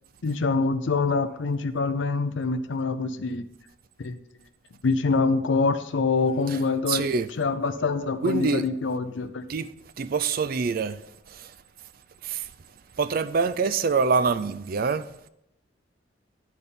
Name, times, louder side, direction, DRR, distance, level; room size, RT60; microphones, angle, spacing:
voice 1, 0.2-3.5 4.0-4.2 4.8-9.4, left 4 dB, 80° left, 0.5 m, -25 dB
voice 2, 6.9-7.3 8.2-8.6 9.5-9.7 10.0-11.0 12.2-12.4 13.0-15.0, right 4 dB, 50° right, 0.4 m, -25 dB
10.5 x 4.2 x 5.2 m
head